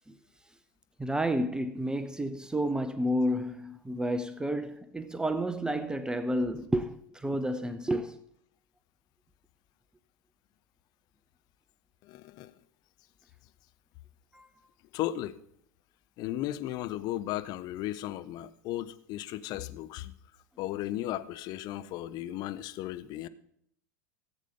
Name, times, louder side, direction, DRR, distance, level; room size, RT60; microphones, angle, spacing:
voice 1, 1.0-8.2 14.3-14.5, right 1 dB, 5° right, 0.6 m, -31 dB
voice 2, 12.0-12.5 14.9-15.4 16.2-20.1 20.6-23.3, left 14 dB, 40° left, 0.7 m, -35 dB
17.0 x 8.2 x 3.8 m
figure-of-eight pair, 80°, 10 cm